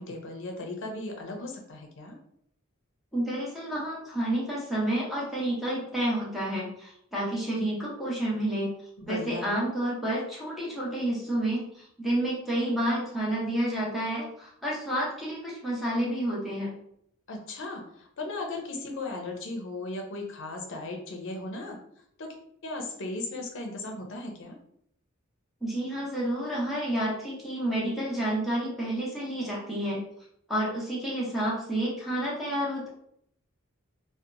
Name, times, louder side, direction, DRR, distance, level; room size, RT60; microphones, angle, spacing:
voice 1, 0.0-2.2 9.0-9.6 17.3-21.8 22.2-22.3 22.6-24.6, left 2 dB, 65° left, 2 dB, 0.6 m, -37 dB
voice 2, 3.1-8.7 9.1-16.7 25.6-30.0 30.5-32.9, right 1 dB, ahead, -6 dB, 0.8 m, -30 dB
2.8 x 2.1 x 2.5 m, 0.70 s
head